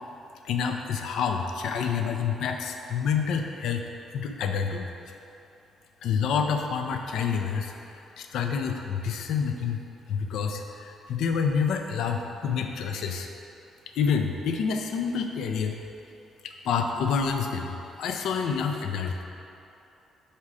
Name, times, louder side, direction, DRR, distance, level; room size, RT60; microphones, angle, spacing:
voice 1, 0.4-3.8 4.1-4.9 6.0-7.7 8.2-9.8 10.1-13.3 14.0-15.8 16.4-19.2, left 6 dB, 80° left, 4 dB, 0.4 m, -28 dB
4.9 x 4.3 x 4.8 m, 2.8 s
cardioid pair, 90°, 0 cm